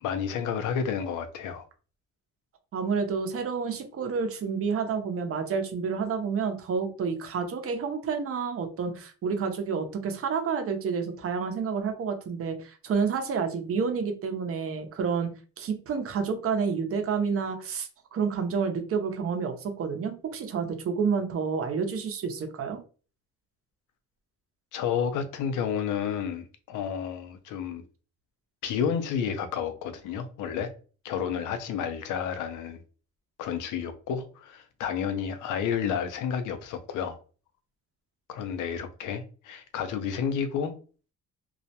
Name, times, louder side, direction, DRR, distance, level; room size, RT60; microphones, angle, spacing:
voice 1, 0.0-1.6 24.7-27.8 28.6-30.7 31.0-32.8 33.4-37.2 38.3-40.7, left 7 dB, 85° left, 0.5 m, -31 dB
voice 2, 2.7-15.3 15.6-22.8, right 5 dB, 50° right, 0.6 m, -29 dB
2.3 x 2.1 x 2.7 m
cardioid pair, 90°, 30 cm